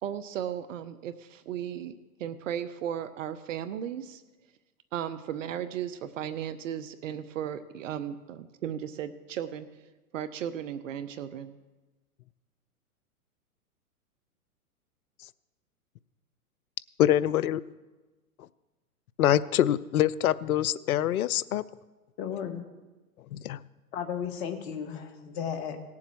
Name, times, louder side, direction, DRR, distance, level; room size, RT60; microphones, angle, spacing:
voice 1, 0.0-1.9 2.2-4.2 4.9-9.7 10.1-11.6, right 9 dB, 55° right, 13 dB, 0.7 m, -35 dB
voice 2, 17.0-17.6 19.2-21.6 23.3-23.6, left 12 dB, 70° left, 18 dB, 0.6 m, -25 dB
voice 3, 22.2-22.6 23.9-25.8, left 8 dB, 45° left, 7 dB, 1.6 m, -34 dB
18.0 x 7.2 x 4.7 m, 1.2 s
hypercardioid pair, 110°, 45 cm